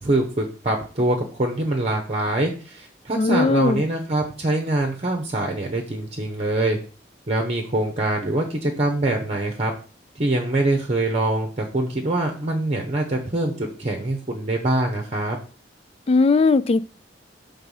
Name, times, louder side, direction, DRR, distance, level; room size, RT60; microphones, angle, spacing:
voice 1, 0.0-6.8 7.3-9.7 10.1-15.4, right 2 dB, 35° right, 0.9 m, -24 dB
voice 2, 3.2-3.8 16.1-16.8, left 3 dB, 35° left, 0.3 m, -18 dB
6.6 x 3.6 x 5.5 m
head